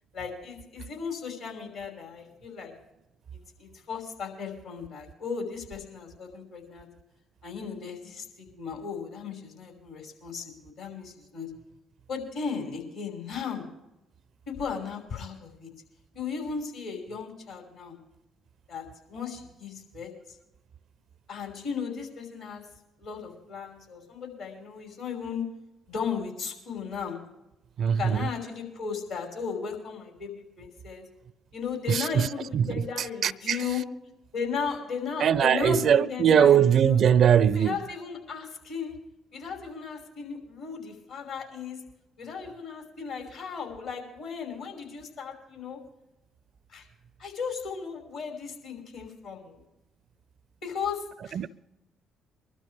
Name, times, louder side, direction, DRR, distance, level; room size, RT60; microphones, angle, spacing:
voice 1, 0.1-2.7 3.6-6.9 7.4-11.5 12.1-13.6 14.5-15.7 16.1-18.0 18.7-20.1 21.3-22.6 23.0-25.4 25.9-27.2 28.0-31.0 31.5-33.8 34.3-37.0 37.5-39.0 39.3-41.8 42.2-45.8 46.7-46.9 47.2-49.6 50.6-51.5, left 6 dB, 70° left, 5.7 m, -36 dB
voice 2, 27.8-28.3 31.9-32.3 32.5-33.6 35.2-37.8 51.3-51.5, right 8 dB, 55° right, 0.5 m, -21 dB
24.0 x 12.5 x 3.5 m
hypercardioid pair, 50°, 0 cm